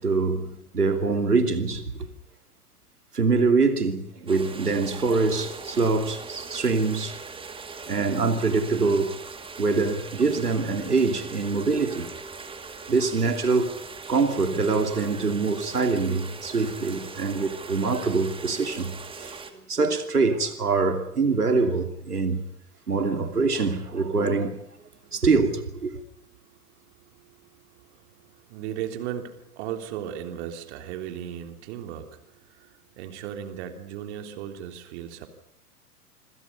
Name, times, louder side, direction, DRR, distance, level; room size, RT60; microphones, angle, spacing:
voice 1, 0.0-2.1 3.1-7.2 7.9-9.2 9.6-12.1 12.9-13.7 14.1-19.4 19.7-22.5 22.9-24.6 25.1-26.0, right 4 dB, 80° right, 2.9 m, -24 dB
sound 1, 4.3-19.5, right 4 dB, 10° right, 2.5 m, -40 dB
voice 2, 26.5-35.3, right 10 dB, 45° right, 3.5 m, -37 dB
27.0 x 25.5 x 5.5 m
figure-of-eight pair, 95°, 46 cm